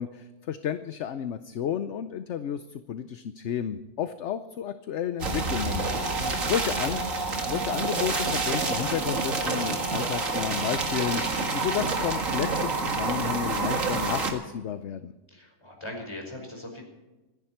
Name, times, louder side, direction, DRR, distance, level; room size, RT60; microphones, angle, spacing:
voice 1, 0.0-5.8 6.4-7.0 7.5-15.1, left 9 dB, 60° left, 10 dB, 0.9 m, -32 dB
sound 1, 5.2-14.3, right 3 dB, 60° right, 2.3 m, -28 dB
voice 2, 5.9-6.6 15.3-16.8, left 1 dB, 15° left, 1 dB, 5.3 m, -40 dB
27.0 x 11.0 x 4.5 m, 1.1 s
omnidirectional pair, 1.6 m